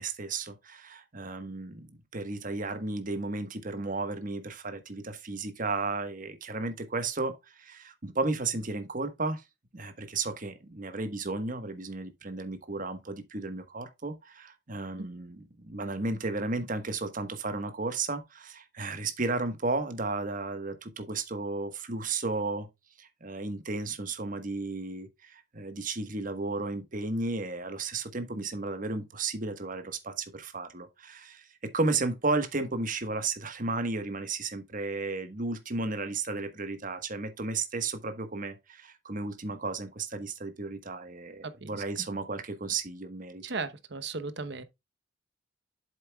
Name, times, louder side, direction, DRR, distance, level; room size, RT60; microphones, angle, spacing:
voice 1, 0.0-1.9 2.1-9.4 9.7-22.7 23.0-43.4, right 3 dB, 45° right, 1.3 m, -33 dB
voice 2, 43.4-44.6, right 4 dB, 60° right, 0.9 m, -36 dB
8.1 x 7.4 x 2.3 m
head